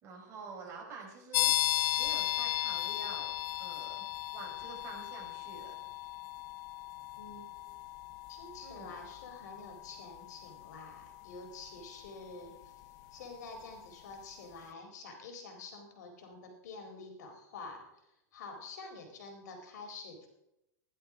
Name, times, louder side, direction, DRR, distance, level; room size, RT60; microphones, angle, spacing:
voice 1, 0.0-1.5 2.0-4.1 4.3-5.8 8.6-9.0, right 4 dB, 30° right, -1 dB, 5.3 m, -48 dB
sound 1, 1.3-13.9, left 16 dB, 35° left, 0.7 m, -37 dB
voice 2, 7.2-7.5 8.3-12.8 13.1-18.1 18.3-20.3, left 3 dB, 70° left, 4 dB, 4.3 m, -48 dB
16.0 x 11.5 x 5.0 m, 0.87 s
supercardioid pair, 155°, 10 cm